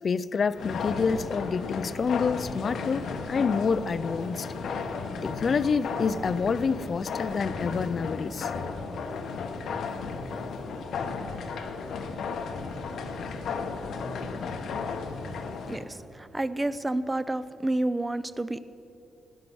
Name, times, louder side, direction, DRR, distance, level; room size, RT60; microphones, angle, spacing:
voice 1, 0.0-4.5 5.2-8.5 9.7-9.8, left 5 dB, 40° left, 15 dB, 0.4 m, -28 dB
sound 1, 0.5-15.8, left 4 dB, 65° left, 1.2 m, -34 dB
voice 2, 15.7-18.6, right 1 dB, 15° right, 14 dB, 0.5 m, -30 dB
18.0 x 9.8 x 6.2 m, 2.9 s
cardioid pair, 140°, 0 cm